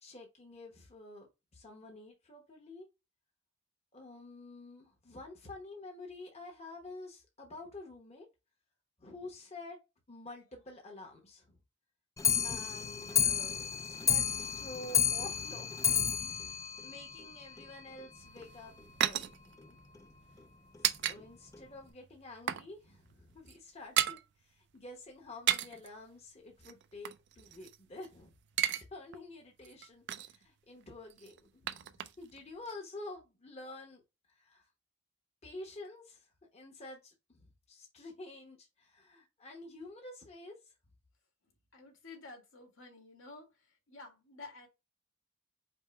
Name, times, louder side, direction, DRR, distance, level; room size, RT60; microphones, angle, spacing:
voice 1, 0.0-2.9 3.9-8.3 9.0-9.8 10.1-11.6 12.4-18.7 19.0-19.8 20.8-28.3 28.9-34.0 34.3-34.7 35.4-40.7, left 2 dB, 35° left, 0.9 m, -49 dB
Clock, 12.2-17.7 18.0-18.1 18.4-18.5 18.8-18.9 19.2-19.3 20.0-20.1 20.8-20.9 21.5-21.6, left 8 dB, 15° left, 0.4 m, -31 dB
sound 1, 18.2-21.2 21.5-21.6 22.0-22.7 23.0-23.1 23.4-24.2 25.2-25.9 26.6-28.1 28.4-28.8 29.1-29.2 29.6-30.4 31.1-32.4 32.6-32.7, right 11 dB, 60° right, 0.4 m, -34 dB
voice 2, 41.7-44.7, left 3 dB, 80° left, 1.8 m, -51 dB
5.2 x 2.1 x 4.5 m
head